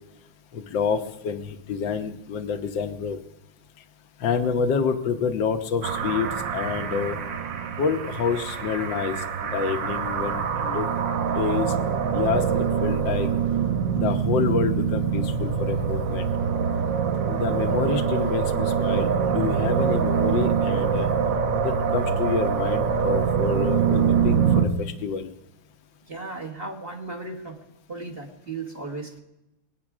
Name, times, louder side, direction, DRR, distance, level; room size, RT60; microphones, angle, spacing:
voice 1, 0.5-3.2 4.2-7.2 7.8-10.9 11.3-11.7 12.1-13.3 13.9-16.3 17.3-21.1 21.6-25.3, left 6 dB, 65° left, 5 dB, 1.7 m, -28 dB
sound 1, 5.8-24.7, right 7 dB, 65° right, 1.6 m, -24 dB
voice 2, 26.1-27.6 27.9-29.2, right 3 dB, 30° right, 2 dB, 1.6 m, -35 dB
21.5 x 9.4 x 6.1 m, 0.93 s
omnidirectional pair, 2.2 m